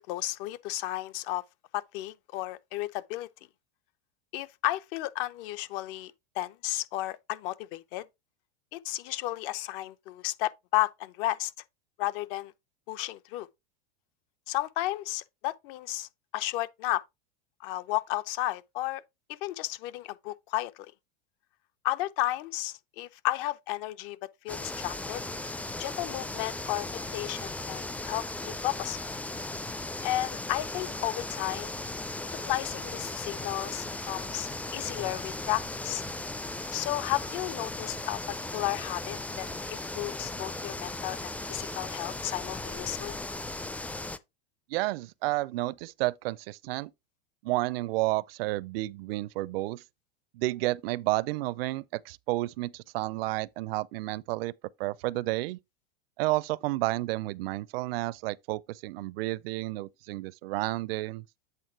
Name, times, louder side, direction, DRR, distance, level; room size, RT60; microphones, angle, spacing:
voice 1, 0.0-1.4 1.7-3.3 4.3-8.0 8.7-11.5 12.0-12.5 12.9-13.5 14.5-16.1 16.3-17.0 17.6-19.0 19.3-20.7 21.8-24.2 24.4-25.2 25.8-29.0 30.0-31.7 32.3-36.0 36.7-43.2, left 16 dB, 60° left, 0.8 m, -33 dB
sound 1, 24.5-44.2, left 2 dB, 5° left, 0.4 m, -37 dB
voice 2, 44.7-46.9 47.4-49.8 50.3-54.5 54.8-55.6 56.2-61.2, right 19 dB, 65° right, 0.5 m, -31 dB
8.2 x 3.5 x 4.5 m
hypercardioid pair, 110°, 32 cm